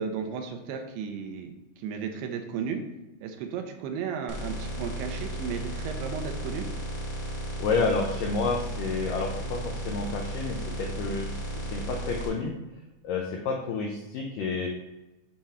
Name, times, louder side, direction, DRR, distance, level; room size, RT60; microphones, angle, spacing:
voice 1, 0.0-2.8 3.2-6.7, right 6 dB, 85° right, 5 dB, 2.8 m, -34 dB
sound 1, 4.3-12.3, right 1 dB, 50° left, 0.8 m, -34 dB
voice 2, 7.6-12.5 13.0-14.7, left 4 dB, 85° left, 0 dB, 1.9 m, -30 dB
7.7 x 3.6 x 4.2 m, 0.99 s
omnidirectional pair, 4.7 m